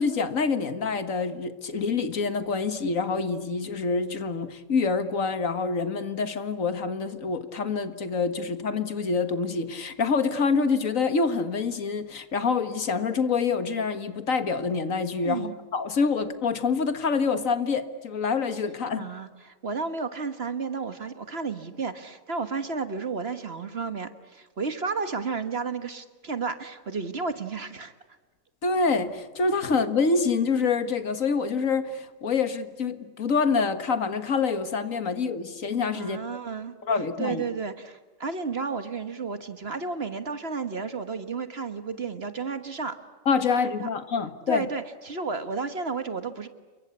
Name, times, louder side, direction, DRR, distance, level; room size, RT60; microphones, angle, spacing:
voice 1, 0.0-19.1 28.6-36.2 36.8-37.4 43.3-44.7, left 4 dB, 80° left, 10 dB, 2.1 m, -26 dB
voice 2, 15.2-15.5 18.9-27.9 35.9-36.7 37.2-43.0 43.8-43.9 44.5-46.5, right 4 dB, 50° right, 10 dB, 1.7 m, -32 dB
29.0 x 24.0 x 8.3 m, 1.3 s
omnidirectional pair, 1.4 m